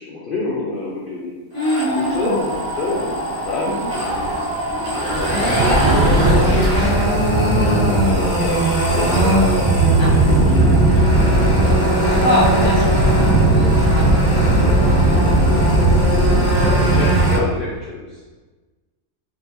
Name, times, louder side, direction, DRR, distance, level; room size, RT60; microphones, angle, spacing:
voice 1, 0.0-1.3 1.9-6.2 7.4-10.0 10.8-12.6 14.0-18.2, left 3 dB, 65° left, -5 dB, 0.5 m, -30 dB
voice 2, 1.5-2.3 3.6-3.9 5.3-5.5 7.6-8.0 10.0-10.3 12.2-14.3, equal, 20° right, -9 dB, 0.9 m, -24 dB
sound 1, 1.6-17.4, right 1 dB, 55° right, 1.6 m, -17 dB
3.7 x 2.7 x 2.7 m, 1.3 s
omnidirectional pair, 1.5 m